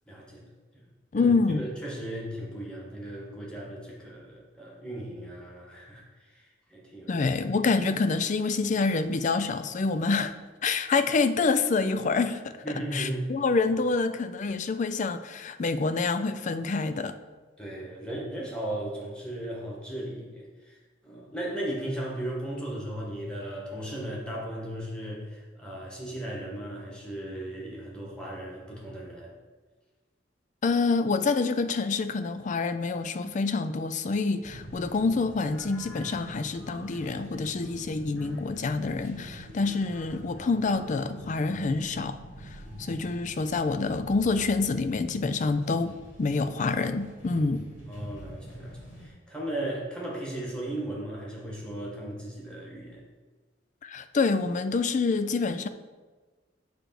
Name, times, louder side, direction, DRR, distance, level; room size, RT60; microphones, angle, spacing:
voice 1, 0.1-0.4 1.1-7.2 12.6-13.3 17.6-29.3 42.6-42.8 47.3-47.4 47.9-53.0, right 1 dB, 5° left, -4 dB, 1.6 m, -36 dB
voice 2, 1.1-1.7 7.1-10.3 10.6-12.5 12.9-17.1 30.6-42.2 42.5-47.6 53.8-55.7, left 4 dB, 40° left, 11 dB, 0.4 m, -27 dB
sound 1, 34.4-49.1, right 1 dB, 80° left, 2.2 m, -45 dB
8.2 x 3.4 x 5.9 m, 1.3 s
head